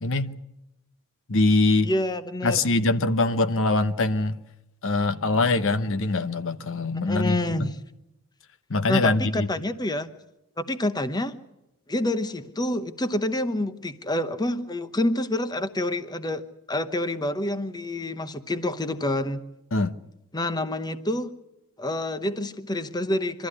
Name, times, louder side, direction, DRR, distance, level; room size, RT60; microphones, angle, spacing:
voice 1, 0.0-0.3 1.3-1.9 2.4-4.4 4.8-7.4 8.7-9.5 19.7-19.9, left 2 dB, 65° left, 0.9 m, -23 dB
voice 2, 1.8-2.7 7.0-7.8 8.9-10.1 10.6-11.3 11.9-16.4 16.7-19.4 20.3-21.3 21.8-23.5, left 1 dB, 20° left, 0.9 m, -27 dB
25.0 x 13.5 x 9.7 m
head